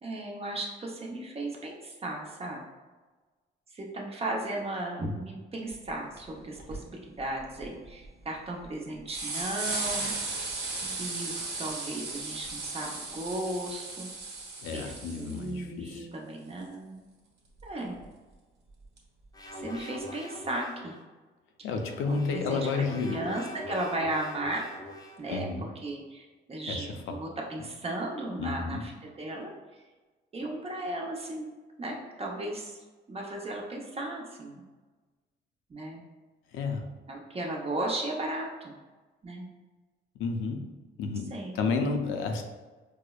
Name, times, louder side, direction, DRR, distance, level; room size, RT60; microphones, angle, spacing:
voice 1, 0.0-2.6 3.7-10.1 10.3-10.4 10.8-14.1 14.7-17.0 17.6-18.0 19.6-20.9 22.1-24.7 25.2-29.5 30.3-31.5 31.8-32.8 33.1-34.6 35.7-36.0 37.1-38.7 39.2-39.4 41.3-41.6, right 1 dB, 30° right, -1 dB, 0.7 m, -35 dB
sound 1, 5.9-6.0 6.2-6.3 6.6-6.8 7.4-8.1 8.6-8.7 9.1-15.5 17.6-17.7 19.0-19.1, right 3 dB, 60° right, 1.1 m, -36 dB
voice 2, 14.6-16.1 21.6-23.2 25.3-25.6 26.7-27.2 28.4-28.8 36.5-36.9 40.2-40.7 41.0-42.4, left 4 dB, 85° left, 4 dB, 0.5 m, -31 dB
sound 2, 19.3-21.0 21.7-25.4, left 1 dB, 20° left, 0.5 m, -43 dB
4.6 x 2.0 x 2.3 m, 1.3 s
cardioid pair, 90°, 20 cm